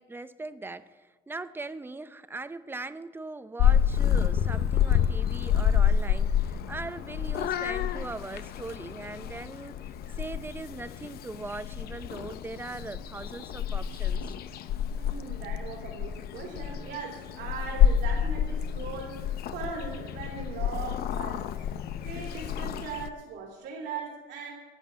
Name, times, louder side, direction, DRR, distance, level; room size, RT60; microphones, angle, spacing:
voice 1, 0.0-9.7 10.2-14.2, right 3 dB, 15° right, 12 dB, 0.6 m, -40 dB
Purr / Meow, 3.6-23.1, left 9 dB, 65° left, 0.7 m, -28 dB
voice 2, 14.9-19.3 19.5-21.7 22.0-24.5, right 5 dB, 85° right, -1 dB, 2.8 m, -39 dB
11.0 x 7.6 x 9.2 m, 1.3 s
cardioid pair, 110°, 17 cm